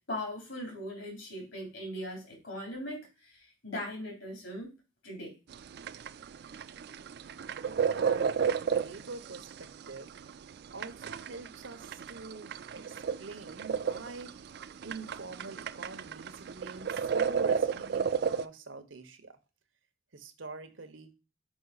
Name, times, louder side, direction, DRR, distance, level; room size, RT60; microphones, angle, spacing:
voice 1, 0.1-4.7 5.0-5.4, left 1 dB, 75° left, 1 dB, 3.4 m, -39 dB
sound 1, 5.5-18.5, right 6 dB, 55° right, 0.3 m, -33 dB
voice 2, 7.7-8.2 8.6-9.5 9.9-10.1 10.7-14.3 14.8-19.4 20.1-21.1, right 3 dB, 85° right, 9 dB, 1.1 m, -45 dB
6.2 x 5.2 x 4.0 m, 0.30 s
head